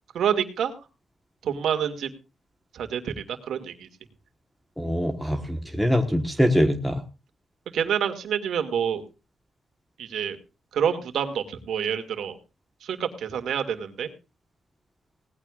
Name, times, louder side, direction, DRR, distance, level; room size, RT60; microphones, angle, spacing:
voice 1, 0.1-0.7 1.4-2.1 2.7-3.9 7.7-9.0 10.0-10.4 10.7-12.4 12.8-14.1, right 8 dB, 90° right, 7 dB, 2.3 m, -27 dB
voice 2, 4.8-7.0, equal, ahead, 5 dB, 1.3 m, -23 dB
19.0 x 15.0 x 2.5 m, 0.32 s
wide cardioid pair, 150°, 0 cm